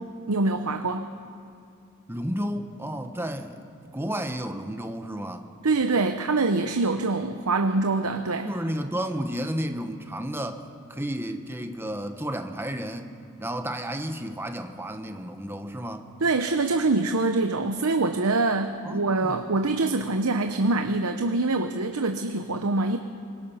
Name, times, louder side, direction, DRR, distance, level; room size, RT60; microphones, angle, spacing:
voice 1, 0.3-1.1 5.6-8.5 16.2-23.0, right 3 dB, 85° right, 6 dB, 0.9 m, -24 dB
voice 2, 2.1-3.6 3.9-5.5 8.4-10.6 10.9-13.1 13.4-16.1 18.8-19.6, equal, 10° right, 7 dB, 1.0 m, -32 dB
25.0 x 21.0 x 5.7 m, 2.4 s
head